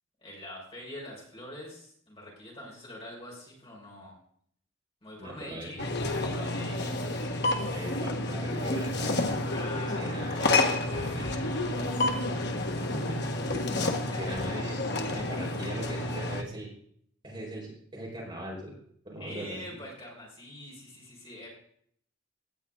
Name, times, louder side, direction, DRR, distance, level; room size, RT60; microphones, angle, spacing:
voice 1, 0.2-4.2 5.0-7.7 9.5-13.1 14.1-14.4 19.2-21.5, left 1 dB, 25° left, -4 dB, 5.8 m, -45 dB
voice 2, 5.2-5.7 7.7-11.3 12.9-13.2 13.5-14.8 15.1-16.7 17.2-18.8 19.0-19.6, right 1 dB, 25° right, -4 dB, 5.1 m, -40 dB
sound 1, 5.8-16.4, left 2 dB, 55° left, 1.5 m, -30 dB
18.0 x 12.0 x 3.9 m, 0.64 s
head